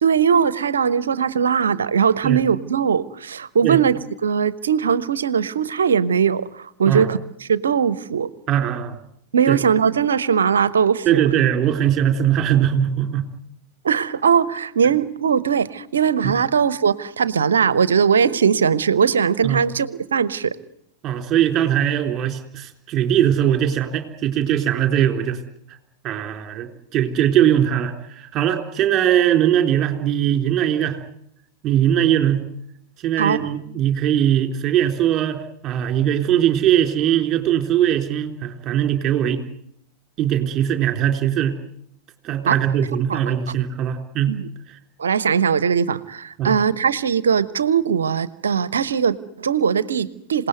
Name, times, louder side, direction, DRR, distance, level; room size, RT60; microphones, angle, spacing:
voice 1, 0.0-8.3 9.3-11.2 13.8-20.6 33.2-33.5 42.5-42.6 43.1-43.2 44.3-44.5 45.0-50.5, right 7 dB, 70° right, 18 dB, 1.0 m, -20 dB
voice 2, 8.5-9.0 9.5-9.6 11.1-13.3 16.2-16.3 19.4-19.6 21.0-25.4 26.0-31.0 31.6-32.4 33.0-39.4 40.2-41.6 42.2-44.4 46.4-46.6, right 10 dB, 30° right, 6 dB, 3.8 m, -20 dB
27.5 x 18.5 x 9.5 m, 0.74 s
figure-of-eight pair, 90°, 0 cm